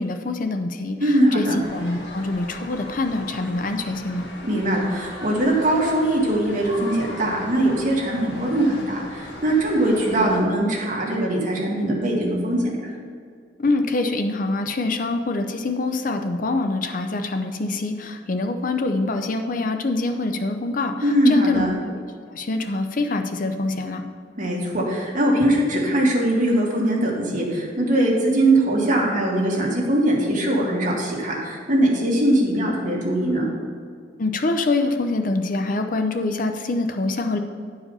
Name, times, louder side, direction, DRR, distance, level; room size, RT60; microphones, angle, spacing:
voice 1, 0.0-4.3 13.6-22.0 22.3-24.0 34.2-37.4, left 2 dB, 50° left, 6 dB, 0.6 m, -25 dB
voice 2, 1.0-1.6 4.4-12.7 21.0-21.7 24.4-33.5, right 1 dB, 45° right, -3 dB, 1.9 m, -21 dB
sound 1, 1.6-10.4, left 1 dB, 65° left, 1.4 m, -38 dB
9.9 x 4.8 x 5.4 m, 2.2 s
head